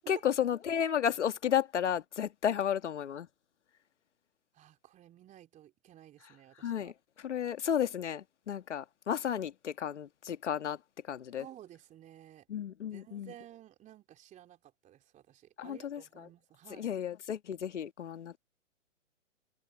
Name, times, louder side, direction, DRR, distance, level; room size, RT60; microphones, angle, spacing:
voice 1, 0.1-3.3 6.6-6.9 7.2-10.8 11.1-11.4 12.5-13.3 15.6-16.0 16.8-18.4, left 9 dB, 65° left, 1.9 m, -32 dB
voice 2, 4.5-6.9 11.4-12.5 12.9-16.9, right 12 dB, 20° right, 3.5 m, -54 dB
figure-of-eight pair, 125°, 38 cm